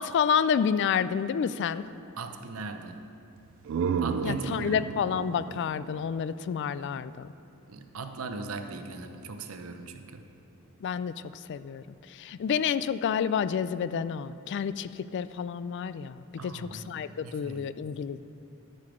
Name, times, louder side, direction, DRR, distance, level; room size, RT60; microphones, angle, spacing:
voice 1, 0.0-1.8 4.2-7.3 10.8-11.1 11.5-11.8 12.1-18.3, left 7 dB, 55° left, 15 dB, 0.3 m, -29 dB
voice 2, 2.2-3.0 4.0-4.8 7.7-10.3 16.4-17.7, right 3 dB, 80° right, 7 dB, 0.7 m, -39 dB
sound 1, 3.4-7.0, right 6 dB, 60° right, 0.3 m, -33 dB
12.0 x 6.6 x 4.9 m, 2.8 s
head